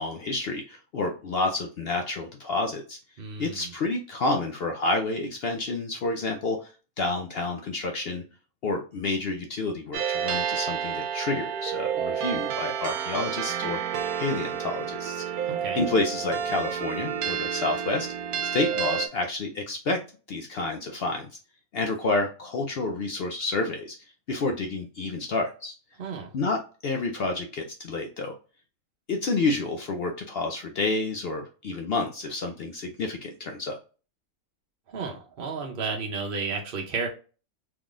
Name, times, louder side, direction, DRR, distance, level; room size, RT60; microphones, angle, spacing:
voice 1, 0.0-3.0 3.4-6.6 7.0-8.2 8.6-13.8 14.2-15.2 15.8-18.1 18.5-20.0 20.3-21.3 21.7-23.9 24.3-25.7 26.3-28.3 29.1-33.8, left 3 dB, 65° left, 3 dB, 0.6 m, -29 dB
voice 2, 3.2-3.7 15.5-15.9 26.0-26.3 34.9-37.1, right 4 dB, 50° right, 1 dB, 0.7 m, -32 dB
sound 1, 9.9-19.1, right 8 dB, 85° right, 1.1 m, -30 dB
3.6 x 3.1 x 2.4 m, 0.35 s
omnidirectional pair, 1.5 m